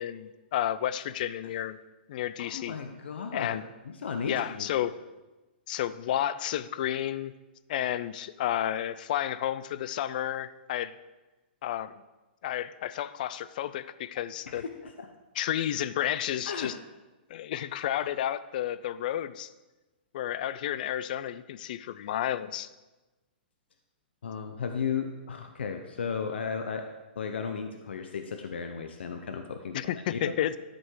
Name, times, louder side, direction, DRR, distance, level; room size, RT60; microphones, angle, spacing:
voice 1, 0.0-1.8 2.1-2.8 3.3-3.6 4.3-4.9 5.7-7.3 7.7-10.9 11.6-12.0 12.4-14.6 15.4-16.7 17.3-19.5 20.1-22.7 29.7-30.6, left 11 dB, 50° left, 16 dB, 0.4 m, -31 dB
voice 2, 2.4-3.6 3.9-4.9 14.5-15.1 16.5-16.7 24.2-26.9 27.2-29.8 30.1-30.3, left 6 dB, 90° left, 5 dB, 0.8 m, -35 dB
12.5 x 5.2 x 4.7 m, 1.1 s
hypercardioid pair, 155°, 6 cm